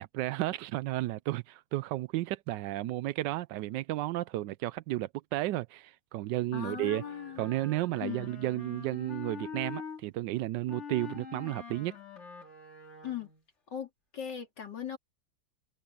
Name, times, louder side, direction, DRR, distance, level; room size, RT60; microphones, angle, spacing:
voice 1, 0.0-7.0 7.4-11.9, right 16 dB, 90° right, 1.2 m, -33 dB
voice 2, 6.5-7.5 8.0-8.3 13.0-13.3 13.7-15.0, left 9 dB, 80° left, 3.8 m, -39 dB
Wind instrument woodwind instrument, 6.8-10.0 10.7-13.4, left 6 dB, 40° left, 2.6 m, -45 dB
omnidirectional pair, 1.9 m